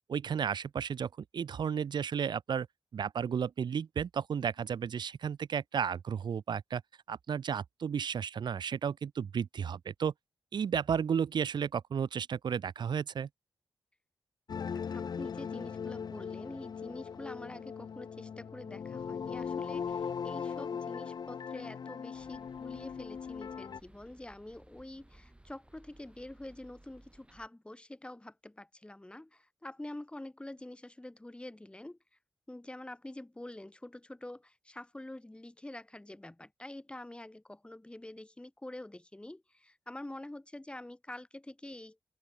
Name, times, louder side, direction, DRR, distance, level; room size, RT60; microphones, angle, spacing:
voice 1, 0.1-2.7 2.9-6.8 7.1-10.1 10.5-13.3, right 7 dB, 80° right, 1.3 m, -33 dB
sound 1, 14.5-23.8, left 6 dB, 65° left, 0.7 m, -39 dB
voice 2, 14.7-32.0 32.5-42.0, left 1 dB, 15° left, 3.0 m, -46 dB
sound 2, 22.1-27.5, right 1 dB, 15° right, 5.1 m, -60 dB
open air
wide cardioid pair, 95°, 7 cm